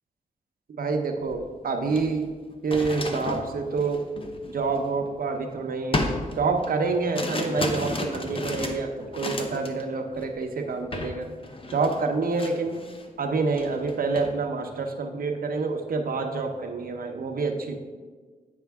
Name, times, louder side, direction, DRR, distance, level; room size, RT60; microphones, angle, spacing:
voice 1, 0.7-2.3 2.6-4.1 4.5-6.1 6.4-11.3 11.7-12.8 13.2-17.8, right 4 dB, 75° right, 4 dB, 0.8 m, -27 dB
sound 1, 1.3-1.4 1.8-5.4 5.9-9.8 10.1-10.4 10.9-11.2 11.4-13.1 13.4-14.3, left 2 dB, 35° left, 0.9 m, -33 dB
9.1 x 5.3 x 3.5 m, 1.4 s
wide cardioid pair, 85°, 15 cm